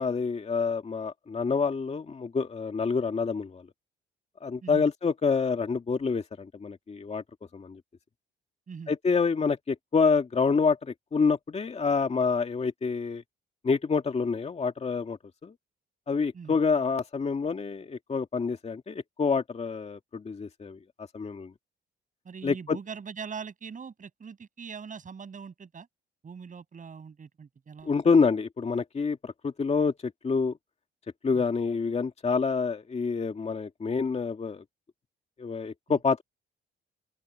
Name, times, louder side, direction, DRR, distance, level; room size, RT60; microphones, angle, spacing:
voice 1, 0.0-3.6 4.4-7.2 7.5-7.8 8.9-13.2 13.6-15.2 15.4-15.5 16.1-21.5 22.4-22.8 27.8-30.5 31.2-34.6 35.4-36.2, left 5 dB, 35° left, 2.2 m, -27 dB
voice 2, 22.2-25.9 26.2-27.9 31.3-31.5 35.9-36.0, right 6 dB, 40° right, 7.3 m, -42 dB
open air
cardioid pair, 90°, 20 cm